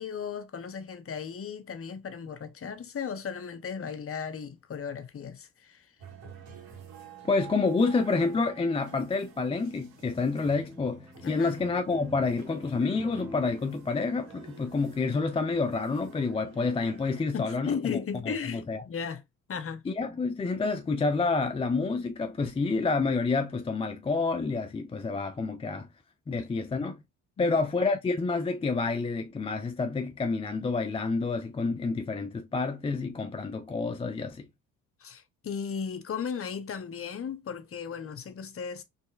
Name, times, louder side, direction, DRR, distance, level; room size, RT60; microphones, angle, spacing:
voice 1, 0.0-5.9 11.2-11.6 17.3-19.2 19.5-19.9 27.4-27.6 35.0-38.8, left 6 dB, 35° left, 0.8 m, -36 dB
sound 1, 6.0-17.2, right 7 dB, 70° right, 2.0 m, -50 dB
voice 2, 7.2-18.8 19.9-25.9 26.3-27.0 27.4-34.5, left 4 dB, 15° left, 0.4 m, -28 dB
sound 2, 9.9-15.3, left 2 dB, 5° right, 1.0 m, -47 dB
4.1 x 3.3 x 2.3 m
supercardioid pair, 65°, 39 cm